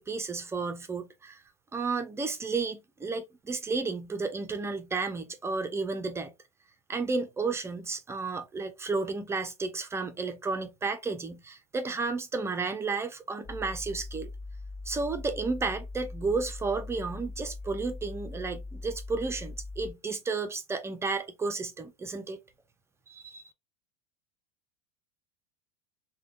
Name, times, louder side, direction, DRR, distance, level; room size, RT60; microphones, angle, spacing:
voice 1, 0.0-1.4 1.7-6.3 6.9-14.3 14.9-22.4 23.1-23.4, right 4 dB, 15° right, 0.6 m, -32 dB
sound 1, 13.4-19.9, left 2 dB, 40° left, 1.4 m, -41 dB
3.4 x 2.3 x 2.5 m
hypercardioid pair, 85°, 17 cm